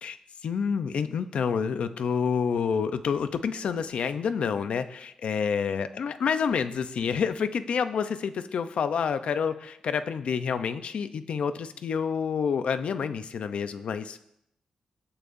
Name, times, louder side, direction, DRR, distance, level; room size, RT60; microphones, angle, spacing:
voice 1, 0.4-14.2, left 6 dB, 70° left, 10 dB, 0.7 m, -28 dB
22.5 x 8.8 x 2.7 m, 0.77 s
wide cardioid pair, 145°, 2 cm